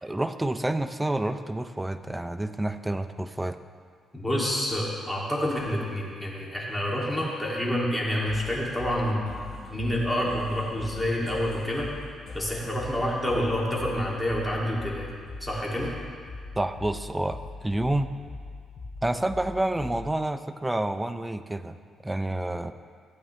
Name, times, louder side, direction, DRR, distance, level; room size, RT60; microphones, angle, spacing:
voice 1, 0.0-3.6 16.6-18.1 19.0-21.8 22.0-22.7, right 1 dB, 10° right, 9 dB, 0.5 m, -29 dB
voice 2, 4.1-9.3 9.7-11.9 12.3-15.9, equal, 10° left, -4 dB, 2.4 m, -28 dB
sound 1, 8.3-20.3, left 3 dB, 50° left, 2.6 m, -41 dB
16.0 x 8.5 x 3.2 m, 2.1 s
cardioid pair, 90°, 0 cm